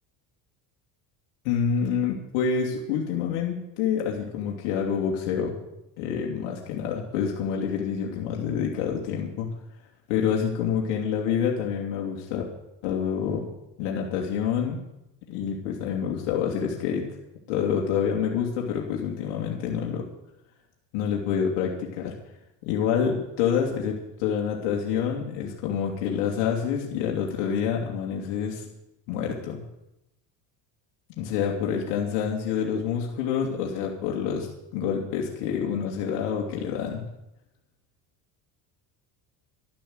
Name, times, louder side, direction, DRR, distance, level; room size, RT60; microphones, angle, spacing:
voice 1, 1.4-5.6 6.0-9.5 10.1-12.4 12.8-13.5 13.8-14.8 15.3-17.0 17.5-20.0 20.9-22.1 22.7-28.6 29.1-29.6 31.2-34.5 34.7-37.1, left 7 dB, 80° left, -1 dB, 2.8 m, -27 dB
12.0 x 12.0 x 8.0 m, 0.89 s
supercardioid pair, 90°, 47 cm